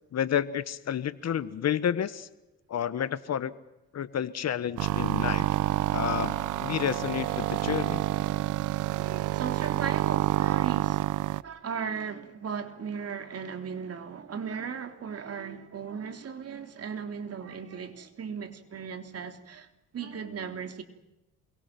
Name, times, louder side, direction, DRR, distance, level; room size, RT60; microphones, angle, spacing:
voice 1, 0.1-2.3 2.7-3.5 3.9-5.5 5.9-8.0, left 9 dB, 60° left, 1.5 m, -30 dB
sound 1, 4.8-11.4, right 15 dB, 85° right, 0.8 m, -28 dB
voice 2, 9.0-19.7 19.9-20.8, right 6 dB, 55° right, 3.3 m, -37 dB
27.5 x 23.5 x 6.1 m
cardioid pair, 90°, 30 cm